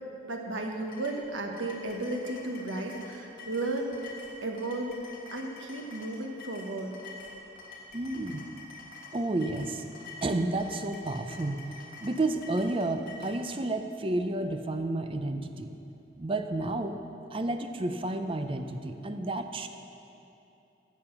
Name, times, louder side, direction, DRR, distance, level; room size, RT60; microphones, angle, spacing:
voice 1, 0.2-7.0, right 2 dB, 90° right, 2 dB, 1.3 m, -34 dB
sound 1, 0.9-13.4, left 3 dB, 50° left, 1.7 m, -47 dB
voice 2, 7.9-8.4 9.1-9.8 10.2-11.6 12.0-15.8 16.2-16.9 17.3-19.7, right 2 dB, 30° right, 8 dB, 0.5 m, -31 dB
14.0 x 7.1 x 5.9 m, 2.8 s
head